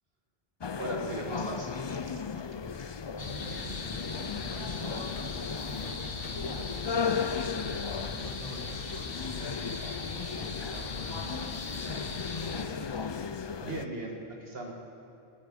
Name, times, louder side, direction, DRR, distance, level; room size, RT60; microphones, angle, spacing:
sound 1, 0.6-13.9, left 6 dB, 45° left, 0.3 m, -36 dB
voice 1, 0.8-2.2 13.6-14.7, right 2 dB, 70° right, 0 dB, 1.9 m, -38 dB
voice 2, 3.1-5.5 5.8-12.7, equal, 35° right, 0 dB, 2.1 m, -49 dB
sound 2, 3.2-12.6, left 4 dB, 65° left, 1.3 m, -39 dB
20.5 x 8.4 x 8.3 m, 2.8 s
omnidirectional pair, 1.0 m